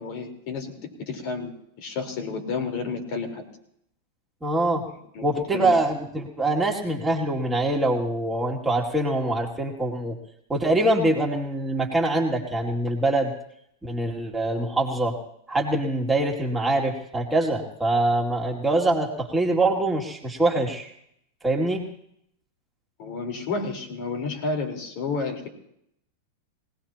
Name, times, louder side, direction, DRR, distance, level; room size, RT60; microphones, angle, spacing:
voice 1, 0.0-1.5 1.8-3.4 5.1-5.2 5.5-5.7 23.0-25.5, left 4 dB, 55° left, 4 dB, 4.3 m, -31 dB
voice 2, 4.4-4.8 5.2-10.2 10.5-13.3 13.8-15.2 15.5-20.9 21.4-21.9, right 2 dB, 10° right, 0 dB, 2.6 m, -24 dB
24.0 x 18.5 x 3.0 m, 0.73 s
hypercardioid pair, 115°, 0 cm